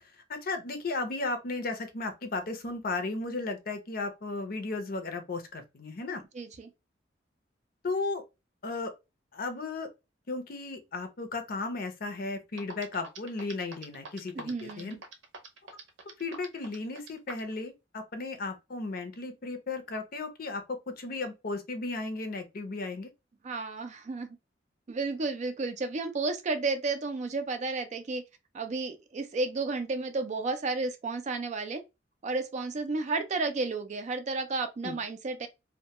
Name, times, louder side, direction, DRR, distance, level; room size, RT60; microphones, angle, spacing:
voice 1, 0.3-6.2 7.8-8.2 8.6-8.9 9.3-9.9 10.3-15.0 16.2-23.1 34.8-35.0, left 3 dB, 50° left, 0.6 m, -35 dB
voice 2, 6.3-6.7 14.3-15.0 23.4-24.4 24.9-28.2 28.5-31.8 32.2-35.5, right 3 dB, 40° right, 0.4 m, -32 dB
sound 1, 12.2-12.3 12.6-17.5, right 4 dB, 80° right, 0.7 m, -44 dB
2.2 x 2.1 x 2.8 m
head